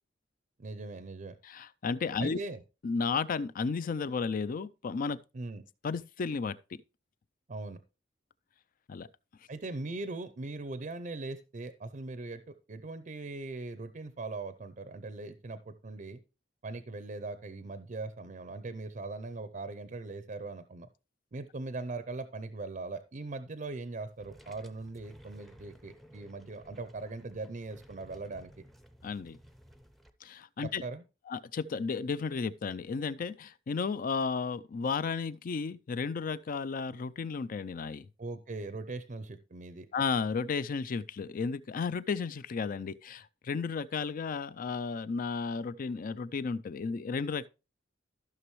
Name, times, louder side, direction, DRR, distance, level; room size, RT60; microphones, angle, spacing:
voice 1, 0.6-1.4 2.2-2.6 5.3-5.6 7.5-7.8 9.5-16.2 16.6-20.9 21.3-28.6 30.8-31.0 38.2-39.9, right 3 dB, 45° right, 0.5 m, -40 dB
voice 2, 1.4-2.4 2.8-5.2 5.8-6.6 8.9-9.1 29.0-29.4 30.2-30.8 31.3-38.1 39.9-47.5, left 5 dB, 45° left, 0.4 m, -33 dB
sound 1, 24.1-30.1, equal, ahead, 0.6 m, -56 dB
14.5 x 6.0 x 3.1 m
head